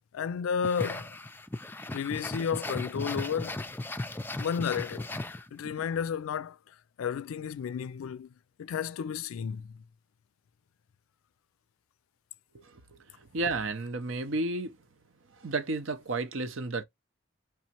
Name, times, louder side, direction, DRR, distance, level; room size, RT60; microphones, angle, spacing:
voice 1, 0.1-1.1 1.9-3.6 4.4-5.1 5.5-8.3 8.6-9.8, left 7 dB, 85° left, 0.3 m, -32 dB
sound 1, 0.6-5.8, left 2 dB, 10° left, 0.3 m, -37 dB
voice 2, 13.2-14.8 15.4-16.8, right 2 dB, 70° right, 0.7 m, -32 dB
4.7 x 3.0 x 2.9 m
head